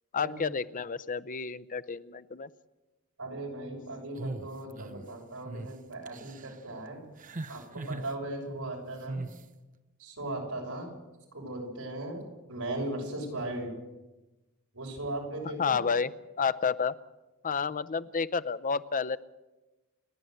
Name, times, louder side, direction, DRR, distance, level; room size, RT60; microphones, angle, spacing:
voice 1, 0.1-2.5 15.6-16.1 16.4-17.0 17.4-19.2, left 5 dB, 40° left, 14 dB, 0.6 m, -30 dB
voice 2, 3.2-7.0 7.5-9.2 10.0-10.9 11.3-12.2 12.5-13.7 14.7-15.8, right 1 dB, 70° right, 0 dB, 6.2 m, -37 dB
sound 1, 4.2-5.1 5.5-5.7 6.1-6.6 7.2-8.1 9.1-9.4, right 2 dB, 35° right, 0.9 m, -39 dB
29.5 x 11.0 x 7.9 m, 1.1 s
head